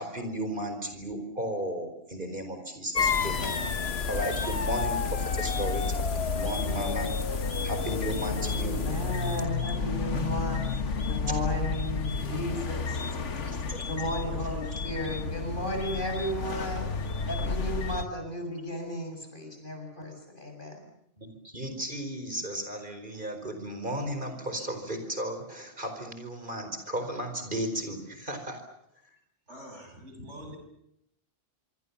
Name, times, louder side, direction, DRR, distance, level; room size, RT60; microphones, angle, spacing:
voice 1, 0.0-3.6 4.1-6.1 6.3-9.0 12.6-12.7 13.4-13.8 14.4-14.5 21.2-28.6, right 1 dB, 45° right, 6 dB, 4.8 m, -35 dB
sound 1, 2.9-9.4, left 6 dB, 60° left, 1.4 m, -32 dB
sound 2, 3.0-18.0, left 4 dB, 75° left, 1.8 m, -32 dB
voice 2, 8.5-10.8 11.0-13.0 13.9-16.9 17.3-20.8, equal, 45° left, 4 dB, 7.4 m, -34 dB
voice 3, 29.5-30.6, equal, 70° right, 4 dB, 7.1 m, -44 dB
26.0 x 25.5 x 7.2 m, 0.79 s
omnidirectional pair, 1.2 m